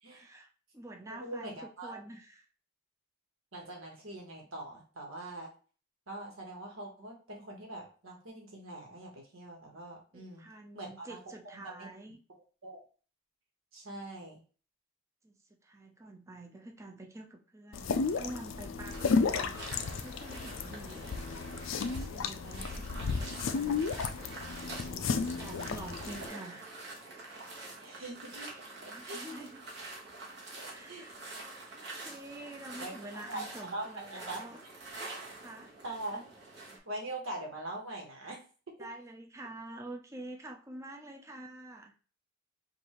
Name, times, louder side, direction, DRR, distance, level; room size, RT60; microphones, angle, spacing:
voice 1, 0.1-0.5 0.7-1.6 1.8-2.4 10.1-12.2 15.2-15.4 15.6-19.6 20.0-21.1 21.7-23.9 25.1-26.8 28.8-29.6 30.7-31.2 31.7-34.6 35.4-35.7 38.8-41.9, right 1 dB, 15° right, 3 dB, 0.5 m, -47 dB
voice 2, 1.0-2.0 3.5-5.5 6.1-10.4 10.7-11.9 12.3-12.8 13.7-14.4 22.4-22.7 24.8-25.4 27.8-28.5 28.8-29.5 30.6-31.1 31.3-31.4 32.8-34.4 35.8-36.2 36.8-38.4, right 2 dB, 80° right, 0 dB, 1.4 m, -43 dB
sound 1, 17.7-26.3, left 5 dB, 70° left, 0.4 m, -33 dB
sound 2, 18.9-36.8, right 2 dB, 55° right, 1.3 m, -46 dB
5.3 x 2.5 x 3.0 m, 0.38 s
head